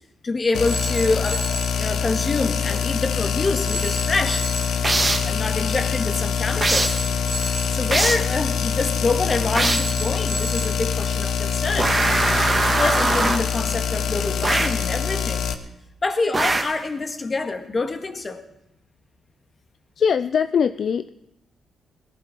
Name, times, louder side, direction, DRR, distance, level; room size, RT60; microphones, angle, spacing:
voice 1, 0.2-1.4 1.8-4.5 5.2-7.0 7.5-11.9 12.6-15.5 16.0-18.4, left 3 dB, 40° left, 6 dB, 2.0 m, -26 dB
sound 1, 0.5-15.5, left 7 dB, 80° left, 1.1 m, -24 dB
Telephone, 0.7-1.8 3.7-4.8 6.7-7.8 9.7-10.8, right 2 dB, 10° right, 1.6 m, -33 dB
sound 2, 4.8-5.4 6.6-7.1 7.9-8.3 9.6-10.0 11.8-13.5 14.4-14.9 16.3-16.8, right 2 dB, 30° right, 1.8 m, -22 dB
voice 2, 20.0-21.1, left 7 dB, 65° left, 11 dB, 0.4 m, -22 dB
18.0 x 15.0 x 4.6 m, 0.87 s
cardioid pair, 65°, 0 cm